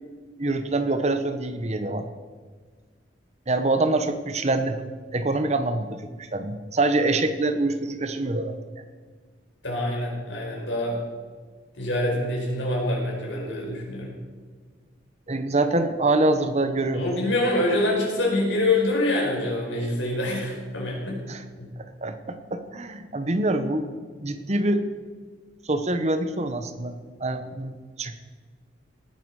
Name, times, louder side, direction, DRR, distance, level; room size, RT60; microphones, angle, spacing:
voice 1, 0.4-2.1 3.5-4.8 5.1-8.6 15.3-17.0 21.3-21.4 21.8-23.9 24.2-24.8 25.6-28.2, right 2 dB, 35° right, 9 dB, 1.0 m, -25 dB
voice 2, 9.6-11.0 11.7-14.1 16.9-21.2 21.6-21.7, left 1 dB, 85° left, -2 dB, 5.0 m, -25 dB
18.5 x 9.9 x 4.9 m, 1.5 s
head